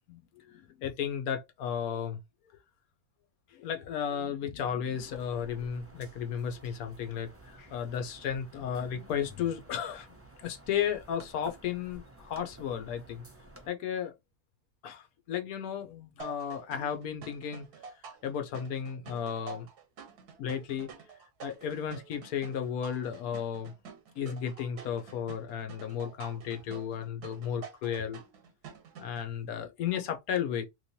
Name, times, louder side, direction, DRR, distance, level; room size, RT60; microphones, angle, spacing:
voice 1, 0.5-2.2 3.5-10.1 10.4-13.2 13.7-14.1 14.8-17.7 18.2-19.7 20.4-20.9 21.4-23.7 24.2-28.2 29.0-30.6, left 8 dB, 75° left, 1.1 m, -34 dB
sound 1, 4.9-13.7, right 1 dB, 20° right, 0.4 m, -53 dB
sound 2, 16.2-29.3, right 6 dB, 85° right, 1.4 m, -49 dB
3.1 x 2.9 x 2.7 m
omnidirectional pair, 1.6 m